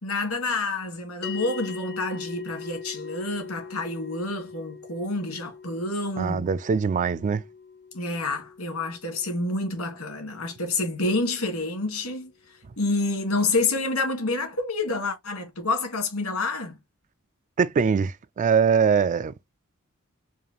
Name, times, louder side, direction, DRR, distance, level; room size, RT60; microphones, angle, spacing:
voice 1, 0.0-6.4 7.9-16.8, left 2 dB, 80° left, 1.9 m, -28 dB
sound 1, 1.2-11.8, left 6 dB, 50° left, 0.5 m, -42 dB
voice 2, 6.2-7.4 17.6-19.3, right 6 dB, 35° right, 0.3 m, -22 dB
4.8 x 2.5 x 2.8 m
head